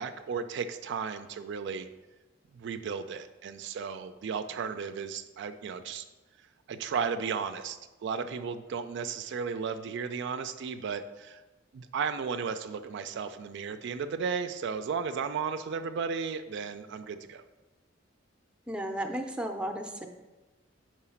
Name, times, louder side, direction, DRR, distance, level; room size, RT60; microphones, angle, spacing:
voice 1, 0.0-1.9 2.5-6.1 6.7-11.4 11.7-17.4, right 6 dB, 60° right, 10 dB, 0.3 m, -34 dB
voice 2, 18.7-20.1, right 1 dB, 5° right, 5 dB, 0.5 m, -34 dB
4.8 x 4.5 x 5.6 m, 1.1 s
head